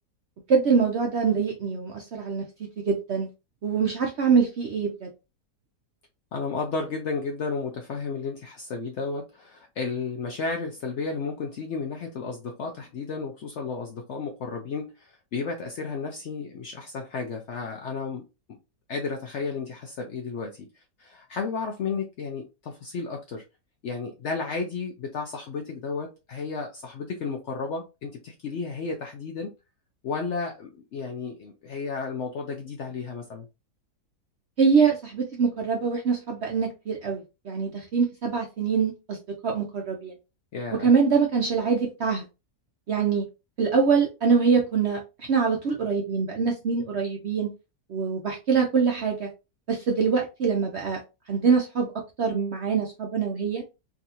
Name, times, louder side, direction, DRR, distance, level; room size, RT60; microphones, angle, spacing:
voice 1, 0.5-2.5 2.8-3.3 3.6-5.1 34.6-40.1 40.8-42.2 42.9-43.3 43.6-47.5 47.9-49.3 49.7-51.0 51.3-51.9 52.2-53.6, right 5 dB, 60° right, 0.7 m, -24 dB
voice 2, 6.3-18.6 18.9-23.4 23.8-29.5 30.0-33.5 40.5-40.9, left 4 dB, 65° left, 0.7 m, -33 dB
3.6 x 2.5 x 2.7 m
omnidirectional pair, 1.7 m